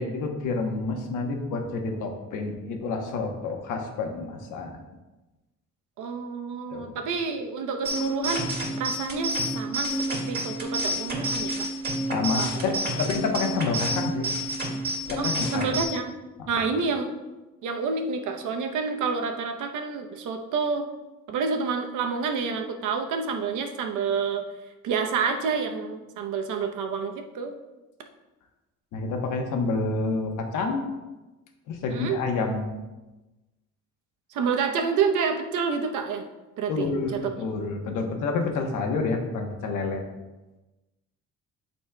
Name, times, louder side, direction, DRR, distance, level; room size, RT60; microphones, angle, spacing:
voice 1, 0.0-4.8 6.7-6.9 12.1-14.3 15.1-15.8 16.4-16.7 28.9-30.9 31.7-32.8 36.7-40.0, left 3 dB, 90° left, 3 dB, 1.1 m, -29 dB
voice 2, 6.0-8.5 8.8-9.9 10.3-11.7 12.4-12.6 15.2-16.1 16.5-17.1 17.6-20.9 21.3-24.4 24.8-27.5 31.9-32.2 34.3-36.2 36.6-37.2, right 5 dB, 85° right, 4 dB, 0.9 m, -28 dB
sound 1, 7.8-15.8, right 1 dB, 35° right, 2.2 m, -29 dB
11.5 x 4.3 x 2.3 m, 1.1 s
cardioid pair, 90°, 30 cm